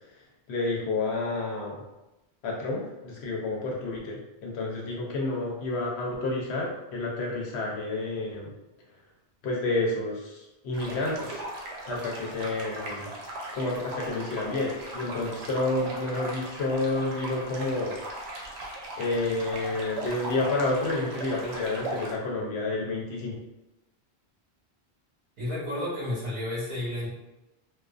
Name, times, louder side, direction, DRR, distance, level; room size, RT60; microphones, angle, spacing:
voice 1, 0.5-1.8 2.4-8.5 9.4-11.4 11.9-13.1 13.5-17.9 19.0-23.4, left 2 dB, 80° left, -1 dB, 0.9 m, -30 dB
sound 1, 10.7-22.1, right 2 dB, 75° right, 0.8 m, -38 dB
voice 2, 25.4-27.1, left 1 dB, 55° right, -10 dB, 1.2 m, -31 dB
2.4 x 2.3 x 2.3 m, 0.97 s
omnidirectional pair, 1.1 m